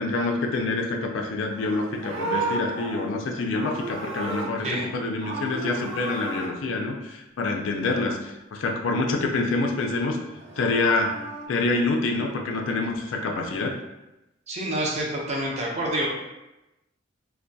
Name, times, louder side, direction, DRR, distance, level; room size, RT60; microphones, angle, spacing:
voice 1, 0.0-10.2 10.6-11.1 11.5-13.7, left 3 dB, 90° left, 2 dB, 0.4 m, -26 dB
Livestock farm animals working animals, 1.5-4.9 5.2-6.5 10.3-11.5, right 3 dB, 80° right, 0.5 m, -33 dB
voice 2, 14.5-16.1, right 1 dB, 35° right, -3 dB, 0.5 m, -27 dB
2.2 x 2.2 x 2.6 m, 0.97 s
head